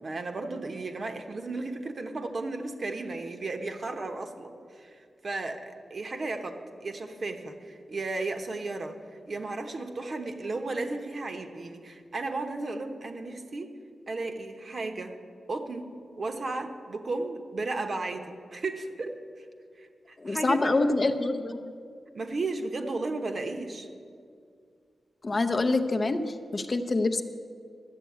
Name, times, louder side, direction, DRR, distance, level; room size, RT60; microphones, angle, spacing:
voice 1, 0.0-9.0 9.3-13.7 14.1-15.2 15.5-19.4 19.8-20.7 22.1-23.9, right 3 dB, 45° right, 6 dB, 0.9 m, -34 dB
voice 2, 20.2-21.7 25.2-27.2, left 2 dB, 30° left, 7 dB, 0.6 m, -26 dB
12.0 x 8.3 x 8.4 m, 2.3 s
wide cardioid pair, 140°, 0 cm